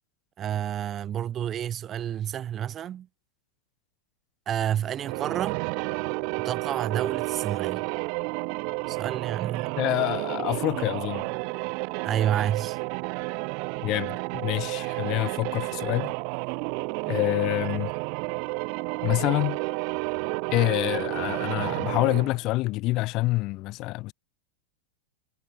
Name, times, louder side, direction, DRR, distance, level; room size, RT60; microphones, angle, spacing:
voice 1, 0.4-3.1 4.5-5.6 6.4-7.9 8.9-9.7 12.0-12.8, right 10 dB, 25° right, 2.6 m, -29 dB
sound 1, 4.9-22.4, right 40 dB or more, 45° right, 0.8 m, -31 dB
voice 2, 9.8-11.3 13.8-16.1 17.1-17.9 19.0-19.6 20.5-24.1, left 20 dB, 40° left, 0.6 m, -27 dB
figure-of-eight pair, 95°, 0 cm